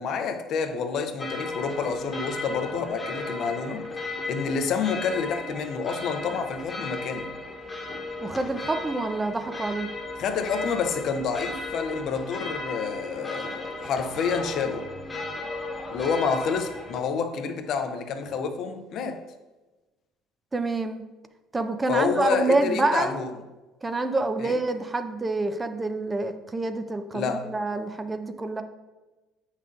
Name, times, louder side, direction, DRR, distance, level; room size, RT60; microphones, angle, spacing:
voice 1, 0.0-3.9 4.3-7.3 10.2-14.9 15.9-19.2 21.9-23.3 24.4-24.6 27.1-27.5, left 5 dB, 55° left, 0.7 m, -28 dB
sound 1, 1.2-17.0, left 2 dB, 25° left, 1.3 m, -35 dB
voice 2, 8.2-9.9 20.5-21.0 21.5-23.1 23.8-28.6, right 2 dB, 20° right, 0.6 m, -27 dB
8.3 x 5.7 x 2.5 m
hypercardioid pair, 60°, 0 cm